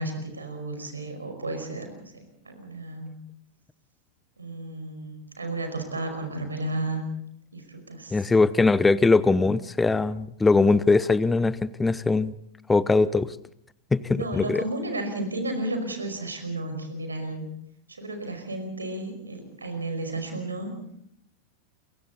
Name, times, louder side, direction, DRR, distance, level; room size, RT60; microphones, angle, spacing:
voice 1, 0.0-3.2 4.4-7.0 7.5-8.2 14.1-17.5 17.9-20.7, right 2 dB, 75° right, 6 dB, 5.2 m, -33 dB
voice 2, 8.1-12.3 12.7-13.4 13.9-14.6, left 3 dB, 10° left, 19 dB, 0.8 m, -21 dB
28.5 x 23.5 x 4.1 m, 0.73 s
figure-of-eight pair, 90°, 0 cm